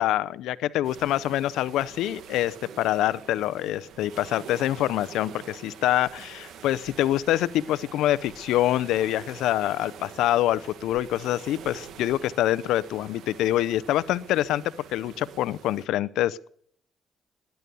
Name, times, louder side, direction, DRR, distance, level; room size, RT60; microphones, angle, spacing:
voice 1, 0.0-14.6 14.9-16.5, left 13 dB, 90° left, 18 dB, 0.6 m, -25 dB
sound 1, 0.8-15.9, right 8 dB, 75° right, 1.6 m, -46 dB
19.5 x 10.5 x 6.9 m, 0.62 s
cardioid pair, 90°, 0 cm